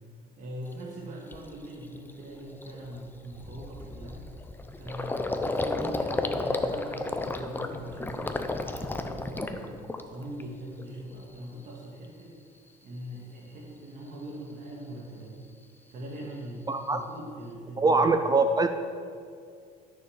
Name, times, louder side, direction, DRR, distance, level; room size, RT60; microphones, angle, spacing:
voice 1, 0.4-4.3 4.8-12.4 12.8-15.4 15.9-18.2, right 1 dB, 50° right, -4 dB, 2.1 m, -41 dB
Gurgling, 0.7-0.8 1.3-1.6 1.9-2.1 2.4-10.4 10.7-11.4, left 2 dB, 10° left, 0.8 m, -33 dB
voice 2, 16.7-17.0 17.8-18.7, right 3 dB, 20° right, 8 dB, 0.6 m, -23 dB
12.5 x 7.0 x 6.7 m, 2.2 s
cardioid pair, 110°, 17 cm